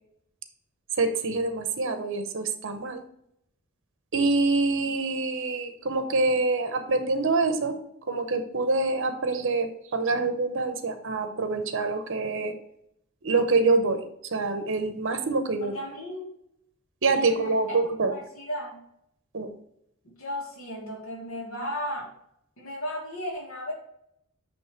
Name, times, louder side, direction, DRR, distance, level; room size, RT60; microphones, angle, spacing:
voice 1, 1.0-3.0 4.1-7.8 8.1-12.5 13.2-14.0 14.3-15.7 17.0-18.1 19.3-19.5, right 3 dB, 60° right, 8 dB, 0.8 m, -26 dB
voice 2, 15.6-16.3 17.1-17.8 18.1-18.8 20.0-22.1 22.6-23.7, equal, 65° left, -2 dB, 1.8 m, -35 dB
9.1 x 3.1 x 4.3 m, 0.76 s
head